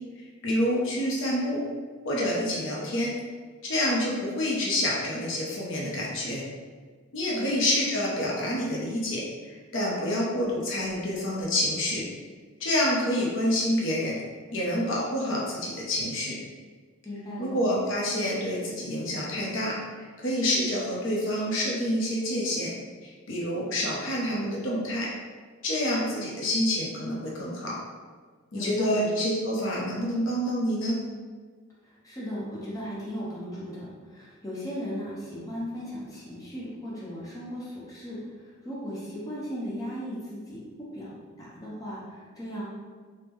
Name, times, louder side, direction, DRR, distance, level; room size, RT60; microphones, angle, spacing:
voice 1, 0.4-1.6 2.0-3.1 3.6-6.4 7.1-12.0 12.6-14.2 14.5-16.4 17.4-19.8 20.2-22.7 23.0-25.1 25.6-27.8 28.5-31.0, left 1 dB, 60° left, -4 dB, 0.6 m, -27 dB
voice 2, 17.0-17.5 28.5-29.1 31.8-42.6, equal, 15° left, -8 dB, 0.7 m, -37 dB
3.4 x 2.1 x 3.0 m, 1.5 s
head